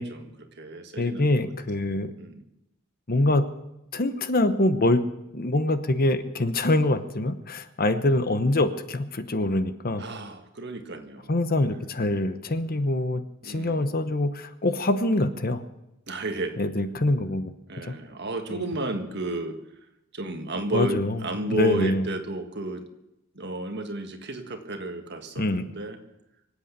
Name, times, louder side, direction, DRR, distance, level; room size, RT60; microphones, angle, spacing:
voice 1, 0.0-1.5 2.2-2.4 10.0-11.3 11.7-11.9 13.4-13.9 16.1-16.6 17.7-19.6 20.1-22.8 23.3-26.0, right 2 dB, 50° right, 6 dB, 1.6 m, -32 dB
voice 2, 1.0-2.1 3.1-3.4 3.9-5.0 5.3-10.0 11.3-15.6 16.6-17.5 17.9-18.0 18.5-18.6 20.7-21.2 21.5-22.0 25.4-25.6, left 2 dB, 40° left, 11 dB, 0.9 m, -24 dB
24.5 x 8.4 x 6.8 m, 0.91 s
head